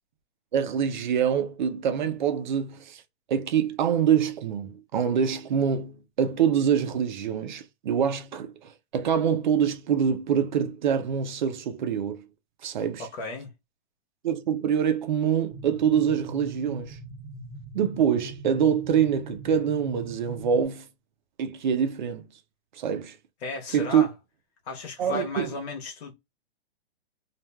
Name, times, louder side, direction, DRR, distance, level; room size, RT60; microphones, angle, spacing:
voice 1, 0.5-3.0 3.3-12.3 12.6-13.1 14.2-17.0 17.7-20.9 21.4-22.3 22.8-23.2 23.7-24.1 25.0-25.5, right 8 dB, 45° right, 0.6 m, -25 dB
voice 2, 13.0-13.5 23.4-24.1 24.6-26.1, left 3 dB, 80° left, 1.0 m, -34 dB
sound 1, 15.5-20.7, right 1 dB, 5° right, 0.7 m, -42 dB
3.2 x 2.4 x 2.2 m
hypercardioid pair, 170°, 32 cm